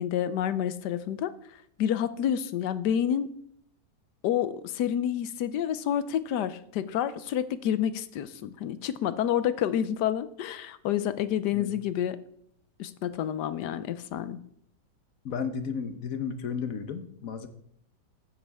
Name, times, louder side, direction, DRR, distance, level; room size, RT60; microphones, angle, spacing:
voice 1, 0.0-1.3 1.8-3.3 4.2-12.2 12.8-14.4, left 10 dB, 75° left, 14 dB, 1.2 m, -29 dB
voice 2, 15.2-17.5, left 6 dB, 55° left, 9 dB, 1.2 m, -33 dB
15.5 x 7.4 x 3.5 m, 0.70 s
omnidirectional pair, 1.9 m